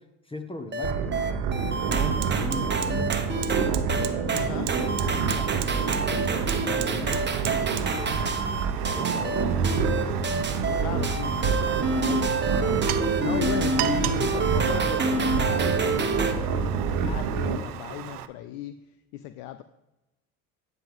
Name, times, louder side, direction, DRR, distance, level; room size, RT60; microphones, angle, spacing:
voice 1, 0.2-1.4 1.8-3.7 4.0-4.5 5.0-10.0, left 2 dB, 10° left, 6 dB, 1.0 m, -40 dB
sound 1, 0.7-16.3, right 3 dB, 25° right, 1.1 m, -28 dB
sound 2, 0.8-17.6, right 6 dB, 65° right, 1.0 m, -28 dB
Fire, 0.8-0.9 1.3-18.3, right 13 dB, 80° right, 0.6 m, -38 dB
voice 2, 4.3-4.7 10.8-19.6, left 13 dB, 65° left, 11 dB, 0.6 m, -37 dB
10.0 x 7.7 x 3.7 m, 0.95 s
hypercardioid pair, 60°, 45 cm